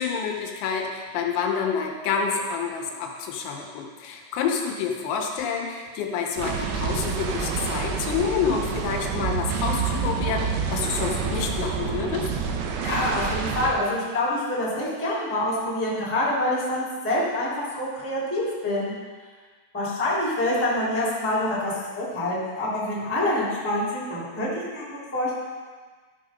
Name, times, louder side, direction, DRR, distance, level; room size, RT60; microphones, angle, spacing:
voice 1, 0.0-12.3, left 6 dB, 80° left, 1 dB, 3.7 m, -28 dB
sound 1, 6.4-13.7, right 6 dB, 85° right, 3.7 m, -28 dB
voice 2, 12.8-18.9 19.7-25.3, left 1 dB, 5° left, -7 dB, 2.1 m, -26 dB
13.0 x 6.4 x 5.2 m, 1.4 s
omnidirectional pair, 6.0 m